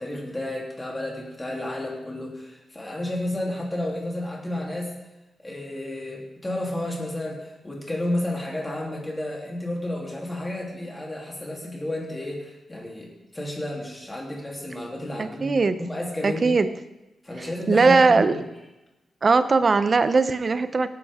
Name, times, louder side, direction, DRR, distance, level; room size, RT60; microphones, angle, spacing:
voice 1, 0.0-4.9 5.4-16.6 17.2-18.4, left 1 dB, 15° left, -2 dB, 3.2 m, -31 dB
voice 2, 15.2-15.8 16.2-16.7 17.4-18.3 19.2-20.9, right 4 dB, 35° right, 12 dB, 0.7 m, -20 dB
17.5 x 10.5 x 3.7 m, 0.98 s
wide cardioid pair, 120°, 0 cm